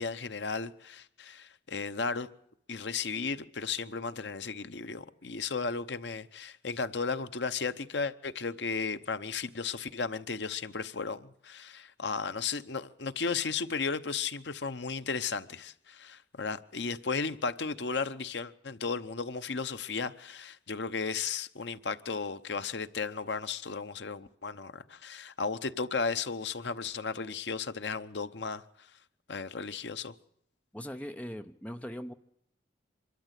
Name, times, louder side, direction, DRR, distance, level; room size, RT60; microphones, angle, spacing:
voice 1, 0.0-2.3 2.7-28.9 29.3-30.1, left 5 dB, 75° left, 0.9 m, -35 dB
voice 2, 30.7-32.1, equal, 10° left, 0.7 m, -40 dB
24.5 x 13.0 x 8.2 m
head